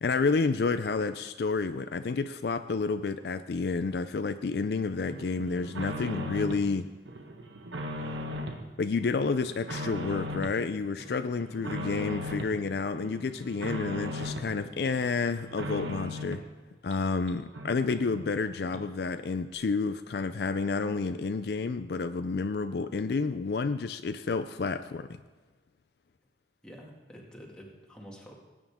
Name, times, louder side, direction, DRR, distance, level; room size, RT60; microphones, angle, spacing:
voice 1, 0.0-6.9 8.8-16.4 16.8-25.1, left 4 dB, 60° left, 10 dB, 0.4 m, -30 dB
sound 1, 5.1-6.7 7.0-8.6 9.0-10.6 11.0-12.6 12.9-14.5 14.9-16.5 16.9-17.0 17.3-17.4 17.5-18.4 18.7-18.8, left 1 dB, 90° right, 1.4 m, -38 dB
voice 2, 26.6-28.3, equal, 5° left, -3 dB, 2.1 m, -48 dB
18.5 x 9.3 x 3.6 m, 1.4 s
head